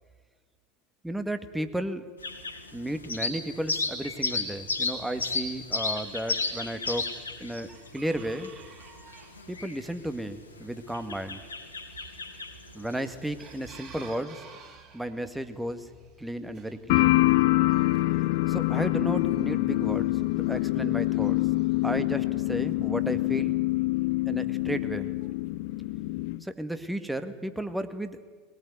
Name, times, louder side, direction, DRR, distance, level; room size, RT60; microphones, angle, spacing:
voice 1, 1.0-2.1 2.7-7.1 7.4-8.5 9.5-11.4 12.7-14.4 14.9-15.9 16.2-17.1 18.5-20.2 20.5-21.4 21.8-23.6 24.3-25.1 26.4-28.2, right 1 dB, 5° right, 9 dB, 1.8 m, -33 dB
sound 1, 2.2-14.1, left 3 dB, 80° left, 2.8 m, -34 dB
Chicken rooster, 5.4-22.0, right 5 dB, 40° right, 7.9 m, -54 dB
sound 2, 16.9-26.4, left 19 dB, 55° left, 0.8 m, -25 dB
21.5 x 19.5 x 9.6 m, 1.5 s
figure-of-eight pair, 80°, 0 cm